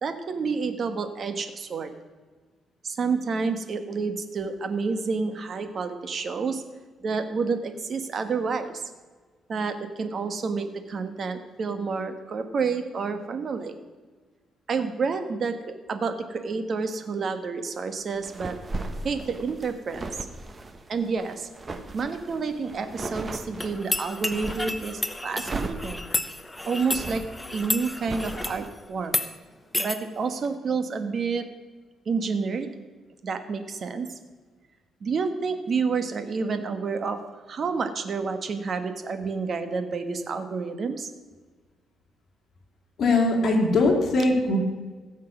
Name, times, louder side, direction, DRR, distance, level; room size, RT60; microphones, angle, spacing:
voice 1, 0.0-1.9 2.8-6.6 7.0-8.8 9.5-13.7 14.7-18.6 19.0-20.0 20.9-21.5 21.9-26.1 26.7-27.2 27.5-29.2 29.8-31.4 32.0-32.7 33.2-34.1 35.0-37.2 37.5-41.1 44.2-44.4, right 4 dB, 45° right, 8 dB, 1.3 m, -29 dB
sound 1, 18.2-24.8 25.3-28.7, right 2 dB, 25° right, 1.0 m, -37 dB
sound 2, 23.6-28.6 29.0-29.3 29.7-30.0, left 1 dB, 10° left, 0.8 m, -31 dB
voice 2, 43.0-44.6, left 2 dB, 45° left, 0 dB, 3.3 m, -21 dB
16.5 x 7.4 x 6.0 m, 1.4 s
cardioid pair, 125°, 0 cm